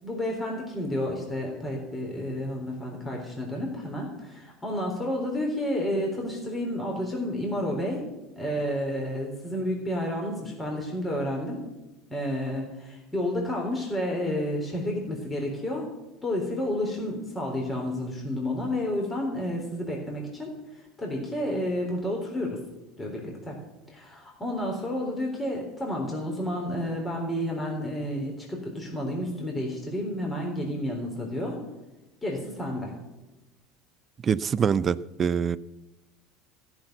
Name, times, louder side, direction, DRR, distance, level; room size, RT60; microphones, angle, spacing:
voice 1, 0.0-8.0 8.3-11.6 12.1-15.9 16.2-22.6 23.0-23.6 23.9-31.6 32.2-32.9, left 1 dB, 15° left, -1 dB, 3.7 m, -30 dB
voice 2, 34.2-35.6, right 7 dB, 35° right, 19 dB, 0.4 m, -24 dB
14.0 x 7.1 x 9.0 m, 1.0 s
hypercardioid pair, 75°, 0 cm